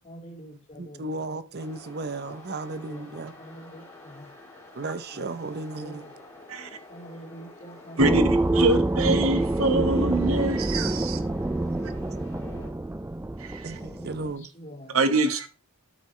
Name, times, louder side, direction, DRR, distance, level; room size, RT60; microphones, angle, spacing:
voice 1, 0.0-1.2 2.4-4.3 5.1-5.3 5.7-6.1 6.9-8.7 11.8-12.8 13.8-15.2, equal, 35° left, 3.9 m, -46 dB
voice 2, 0.8-3.4 4.7-6.1 13.6-14.5, right 3 dB, 45° right, 0.7 m, -35 dB
sound 1, 1.5-12.7, left 2 dB, 15° left, 3.6 m, -48 dB
sound 2, 8.0-14.3, right 2 dB, 10° right, 0.3 m, -26 dB
voice 3, 8.0-11.2 13.4-13.8 14.9-15.5, right 2 dB, 70° right, 1.3 m, -25 dB
13.0 x 6.3 x 3.2 m
head